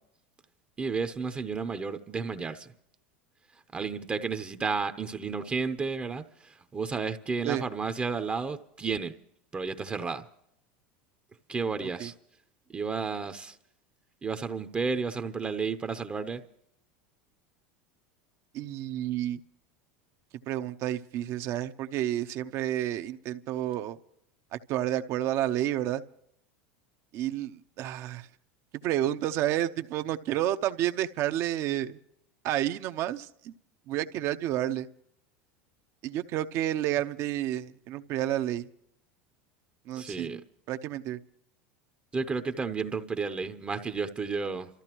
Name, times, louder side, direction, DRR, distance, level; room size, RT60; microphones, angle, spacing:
voice 1, 0.8-2.7 3.7-9.2 9.5-10.3 11.5-12.1 12.7-13.6 14.2-16.4 40.0-40.4 42.1-44.7, right 5 dB, 20° right, 0.7 m, -32 dB
voice 2, 18.5-19.4 20.5-24.0 24.5-26.0 27.1-28.3 28.8-32.0 32.4-33.5 33.9-34.9 36.0-38.7 39.9-40.4 40.7-41.2, right 12 dB, 50° right, 0.8 m, -30 dB
28.5 x 14.0 x 3.0 m
supercardioid pair, 120°, 6 cm